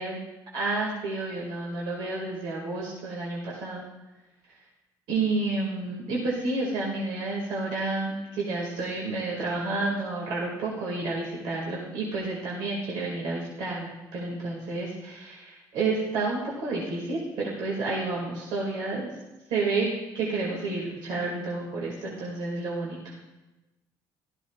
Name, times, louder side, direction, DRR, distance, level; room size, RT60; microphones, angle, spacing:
voice 1, 0.5-3.8 5.1-19.1 19.5-19.9 20.1-23.0, right 3 dB, 80° right, -4 dB, 2.1 m, -30 dB
15.5 x 13.0 x 2.4 m, 1.1 s
cardioid pair, 110°, 8 cm